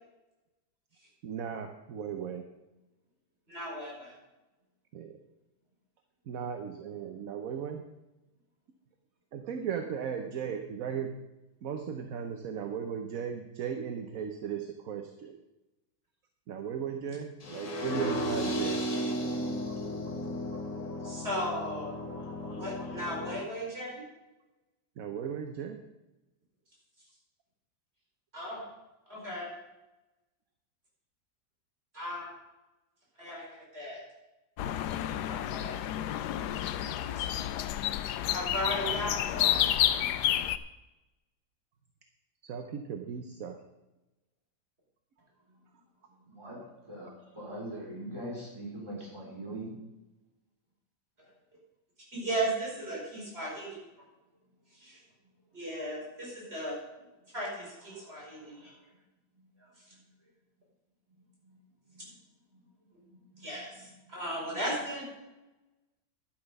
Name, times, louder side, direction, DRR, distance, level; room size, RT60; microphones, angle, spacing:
voice 1, 1.2-2.4 4.9-5.1 6.3-7.8 9.3-11.1 11.6-15.4 16.5-18.8 25.0-25.8 42.4-43.6, right 7 dB, 60° right, 6 dB, 1.2 m, -36 dB
voice 2, 3.5-4.1 21.0-21.9 22.5-24.0 28.3-28.7 29.1-29.5 31.9-32.3 33.2-34.0 35.3-35.8 37.1-37.3 38.3-39.6 52.1-53.8 54.8-55.0 55.5-56.7 57.3-58.7 63.4-65.0, right 1 dB, 35° right, -4 dB, 5.1 m, -36 dB
sound 1, 17.4-23.4, equal, 50° left, 2.2 m, -34 dB
sound 2, 34.6-40.6, left 11 dB, 75° left, 1.2 m, -30 dB
voice 3, 46.2-49.7 57.9-58.7 59.4-60.0 61.4-61.6 61.9-62.1 62.5-62.6 63.1-63.5 63.8-63.9 64.5-64.6, right 1 dB, 15° right, -5 dB, 4.1 m, -43 dB
12.0 x 9.1 x 5.4 m, 1.0 s
omnidirectional pair, 1.8 m